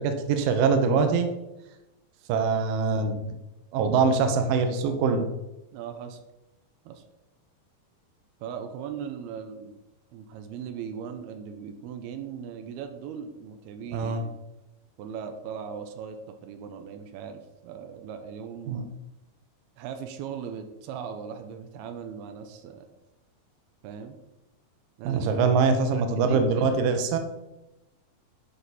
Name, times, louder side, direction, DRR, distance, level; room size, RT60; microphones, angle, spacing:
voice 1, 0.0-1.3 2.3-3.4 3.7-5.3 13.9-14.3 18.7-18.8 25.0-27.2, right 5 dB, 75° right, 7 dB, 2.4 m, -23 dB
voice 2, 5.7-6.2 6.9-7.0 8.4-9.8 10.1-14.3 15.0-18.9 19.8-22.9 23.8-24.2 25.0-25.5 25.9-26.8, right 7 dB, 90° right, 6 dB, 2.7 m, -38 dB
11.5 x 5.1 x 4.2 m, 0.96 s
omnidirectional pair, 4.4 m